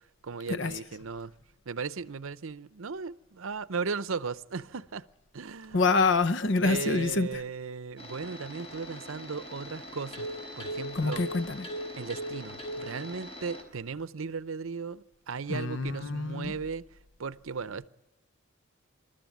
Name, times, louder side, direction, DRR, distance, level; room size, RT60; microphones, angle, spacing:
voice 1, 0.2-1.3 1.7-5.0 5.3-5.9 6.6-10.3 10.6-11.3 12.0-16.8 17.2-17.9, right 5 dB, 70° right, 0.7 m, -36 dB
voice 2, 5.7-7.4 10.9-11.7 15.5-16.5, left 3 dB, 55° left, 0.7 m, -26 dB
sound 1, 8.0-13.6, equal, 30° left, 4.6 m, -40 dB
27.5 x 13.0 x 9.2 m
head